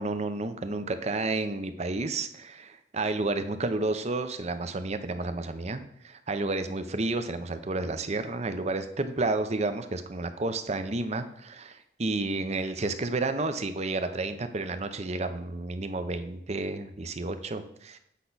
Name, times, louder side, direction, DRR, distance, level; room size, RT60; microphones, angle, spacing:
voice 1, 0.0-18.0, right 2 dB, 40° right, 9 dB, 0.7 m, -31 dB
8.2 x 5.7 x 4.0 m, 0.73 s
head